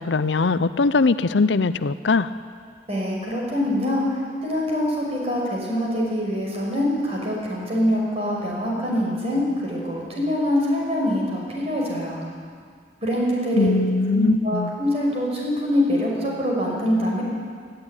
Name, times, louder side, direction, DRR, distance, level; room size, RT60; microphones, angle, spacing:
voice 1, 0.0-2.3 13.6-14.7, left 3 dB, 75° left, 14 dB, 0.6 m, -21 dB
voice 2, 2.9-12.2 13.0-13.8 14.1-17.2, left 1 dB, 35° right, -3 dB, 5.8 m, -24 dB
19.0 x 14.0 x 9.9 m, 2.1 s
head